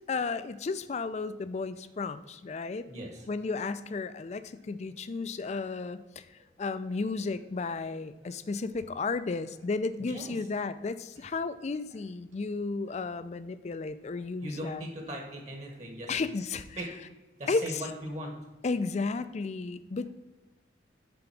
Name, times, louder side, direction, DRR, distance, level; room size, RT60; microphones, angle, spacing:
voice 1, 0.1-2.9 3.3-6.3 6.6-14.8 16.1-16.8 17.5-17.8 18.6-20.1, left 4 dB, 35° left, 13 dB, 0.4 m, -33 dB
voice 2, 2.9-3.3 8.2-8.3 10.0-10.3 14.4-16.2 16.8-16.9 17.4-18.3, equal, 40° right, 2 dB, 1.4 m, -39 dB
7.1 x 3.9 x 5.9 m, 1.1 s
head